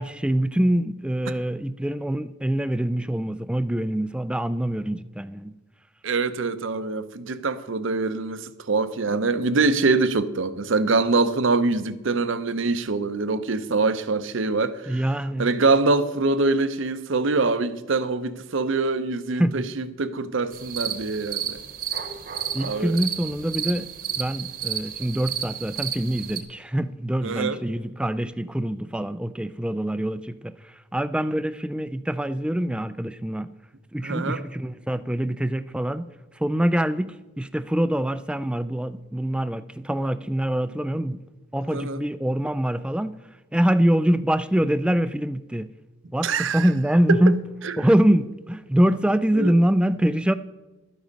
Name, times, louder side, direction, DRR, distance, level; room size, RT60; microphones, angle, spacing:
voice 1, 0.0-5.5 14.9-15.5 19.4-19.6 22.5-33.5 33.9-36.1 36.3-41.2 41.5-43.2 43.5-45.7 46.1-47.5 47.8-50.3, right 1 dB, 5° right, 0.3 m, -24 dB
voice 2, 6.0-15.0 15.4-21.6 22.6-23.0 27.2-27.6 34.0-34.4 41.7-42.0 46.2-46.7 47.1-47.2 49.4-49.5, right 3 dB, 65° right, 0.7 m, -24 dB
sound 1, 20.5-26.4, right 9 dB, 45° right, 1.0 m, -32 dB
12.5 x 9.3 x 5.2 m
head